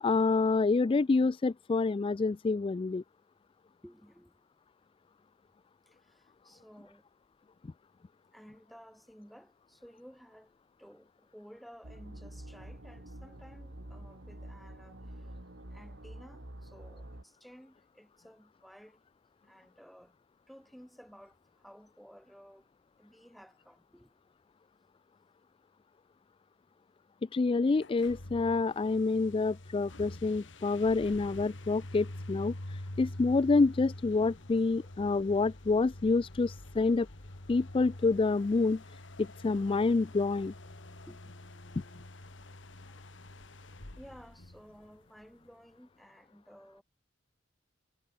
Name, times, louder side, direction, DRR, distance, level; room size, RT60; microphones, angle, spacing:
voice 1, 0.0-3.0 27.3-37.1 37.5-38.8 39.2-40.5, left 3 dB, 25° left, 0.3 m, -27 dB
voice 2, 3.8-4.4 5.9-7.1 8.3-15.3 15.7-19.0 19.4-20.2 20.5-22.7 23.0-24.1 41.1-41.6 43.9-46.8, equal, ahead, 5.3 m, -55 dB
sound 1, 11.8-17.2, right 1 dB, 65° right, 2.6 m, -47 dB
sound 2, 27.7-45.2, left 1 dB, 65° left, 2.5 m, -46 dB
sound 3, 39.1-44.5, left 1 dB, 50° left, 7.0 m, -63 dB
head